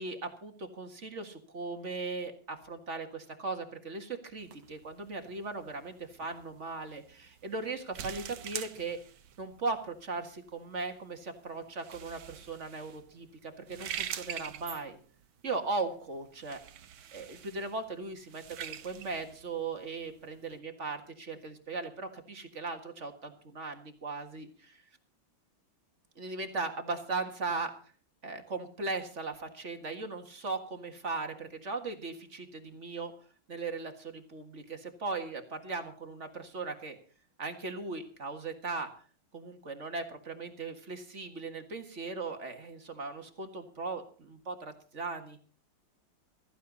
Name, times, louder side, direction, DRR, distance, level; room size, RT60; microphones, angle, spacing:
voice 1, 0.0-9.0 9.4-15.0 15.4-16.6 17.1-24.8 26.2-27.7 28.2-33.1 33.5-37.0 37.4-38.9 39.3-45.4, right 3 dB, 35° right, 6 dB, 1.9 m, -38 dB
sound 1, 4.4-20.6, right 9 dB, 65° right, 1.7 m, -45 dB
16.0 x 14.5 x 4.0 m, 0.42 s
omnidirectional pair, 2.4 m